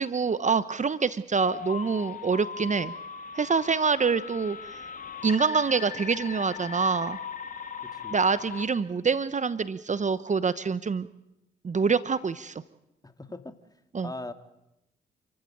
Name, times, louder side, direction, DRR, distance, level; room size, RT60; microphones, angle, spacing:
voice 1, 0.0-2.9 3.3-4.8 5.2-7.2 8.1-11.1 11.6-12.6 13.9-14.1, right 5 dB, 35° right, 15 dB, 1.0 m, -26 dB
sound 1, 1.4-8.7, left 6 dB, 40° left, 3.4 m, -39 dB
voice 2, 13.0-13.5 14.0-14.3, left 2 dB, 20° left, 9 dB, 2.5 m, -39 dB
28.5 x 14.5 x 9.1 m, 0.90 s
hypercardioid pair, 50°, 21 cm